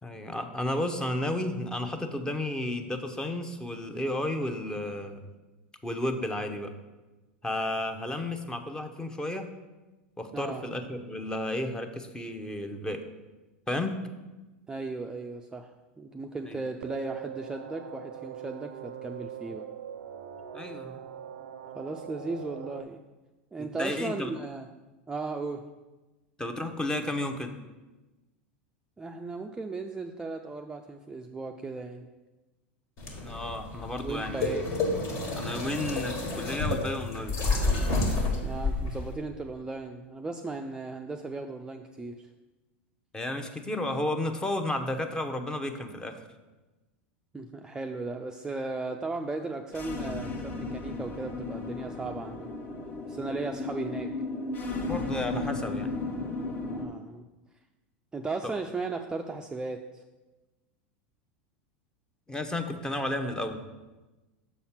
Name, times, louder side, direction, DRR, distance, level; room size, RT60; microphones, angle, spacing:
voice 1, 0.0-5.2 5.8-6.7 7.4-9.5 10.2-13.0 13.7-14.0 16.5-16.6 20.5-21.0 23.6-24.3 26.4-27.6 33.2-34.6 35.3-37.4 43.1-46.2 54.8-55.9 62.3-63.6, left 1 dB, 10° left, 6 dB, 0.7 m, -32 dB
voice 2, 10.3-10.7 14.7-15.7 16.0-19.7 21.7-23.0 23.5-24.7 25.1-25.6 29.0-32.1 34.0-34.7 38.4-42.3 47.3-52.5 53.1-54.1 56.7-57.2 58.1-60.0, right 3 dB, 10° right, 3 dB, 0.4 m, -36 dB
sound 1, 16.8-22.8, right 9 dB, 80° right, 0.4 m, -42 dB
sound 2, 33.0-39.1, left 2 dB, 50° left, 1.7 m, -30 dB
sound 3, 49.7-56.9, left 3 dB, 35° left, 1.0 m, -35 dB
6.5 x 4.3 x 5.7 m, 1.1 s
hypercardioid pair, 100°, 6 cm